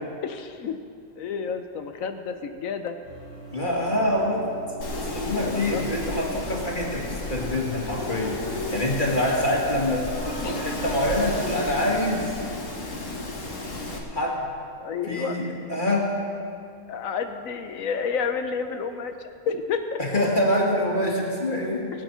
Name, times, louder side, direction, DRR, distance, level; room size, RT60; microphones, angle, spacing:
voice 1, 0.2-0.8 1.2-3.0 5.4-5.8 10.4-10.6 14.8-15.4 16.9-20.0, left 6 dB, 85° left, 7 dB, 1.2 m, -30 dB
sound 1, 3.0-11.0, right 1 dB, 75° right, 4.7 m, -41 dB
voice 2, 3.5-4.5 5.1-8.4 8.7-12.4 14.1-14.4 15.1-16.1 20.0-21.9, left 1 dB, 40° left, -3 dB, 2.3 m, -25 dB
Wind, 4.8-14.0, left 2 dB, 65° left, 2.1 m, -32 dB
20.5 x 8.5 x 5.6 m, 2.4 s
omnidirectional pair, 1.4 m